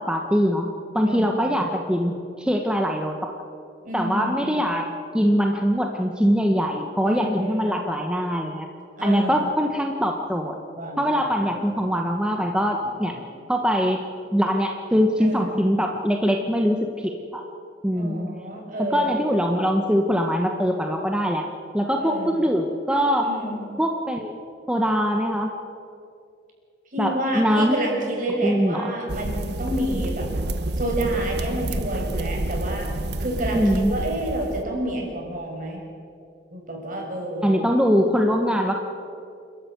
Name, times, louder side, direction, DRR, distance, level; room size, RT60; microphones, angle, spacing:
voice 1, 0.0-3.3 3.9-4.9 5.1-8.7 9.0-10.6 11.0-13.2 13.5-14.0 14.3-17.4 17.8-18.3 18.9-21.5 21.7-23.3 23.8-24.3 24.7-25.5 27.0-27.8 28.4-28.9 33.5-33.9 37.4-38.7, equal, 5° right, 3 dB, 1.3 m, -22 dB
voice 2, 3.8-4.7 7.0-7.8 9.0-9.5 10.8-11.8 12.3-12.5 12.8-13.2 15.2-15.5 17.9-19.2 22.0-22.5 23.2-23.7 26.9-30.3 30.7-32.9 33.2-35.8 36.5-37.6, right 1 dB, 50° right, 0 dB, 6.4 m, -29 dB
sound 1, 29.1-34.6, right 1 dB, 65° right, 1.3 m, -29 dB
28.5 x 13.5 x 9.4 m, 2.5 s
head